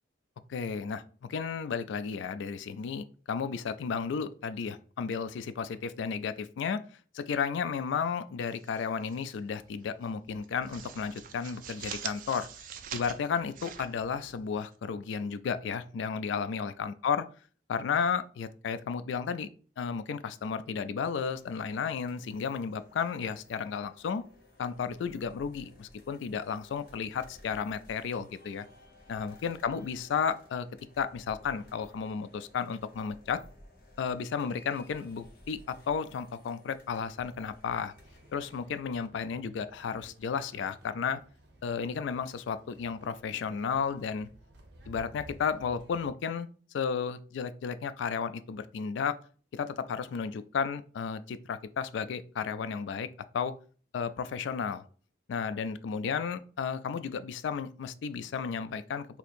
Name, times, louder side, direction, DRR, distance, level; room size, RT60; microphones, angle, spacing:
voice 1, 0.5-1.0 1.3-6.8 7.1-12.5 12.9-17.3 17.7-19.5 19.8-24.2 24.6-28.7 29.1-30.7 31.0-33.4 34.0-37.9 38.3-41.2 41.6-44.3 44.9-46.5 46.7-49.2 49.5-53.1 53.3-53.5 53.9-54.8 55.3-59.1, left 6 dB, 85° left, 13 dB, 0.3 m, -33 dB
sound 1, 8.5-9.4 9.7-9.9 10.3-14.7, right 8 dB, 45° right, 0.3 m, -44 dB
sound 2, 21.3-38.6, left 1 dB, 50° left, 0.9 m, -57 dB
sound 3, 38.0-46.1, right 1 dB, 65° right, 0.7 m, -55 dB
2.8 x 2.6 x 4.2 m, 0.41 s
head